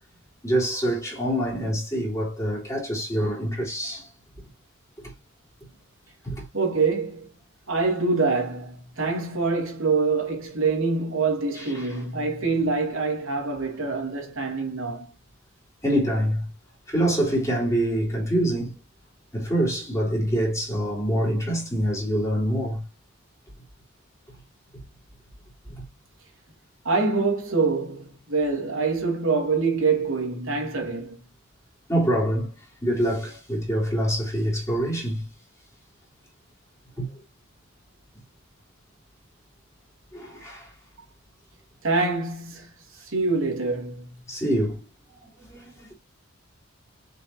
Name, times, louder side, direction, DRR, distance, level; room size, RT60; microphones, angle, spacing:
voice 1, 0.4-4.1 6.2-6.4 11.5-12.0 15.8-16.5 16.9-18.8 19.3-22.8 25.7-25.8 31.9-32.5 32.8-35.3 37.0-37.1 40.1-40.7 44.3-44.8 45.4-45.9, right 1 dB, 15° left, 3.7 m, -25 dB
voice 2, 6.5-7.3 7.7-15.1 26.8-31.2 41.8-42.7 43.0-44.1, right 4 dB, 75° right, 2.8 m, -25 dB
6.8 x 5.5 x 2.8 m
head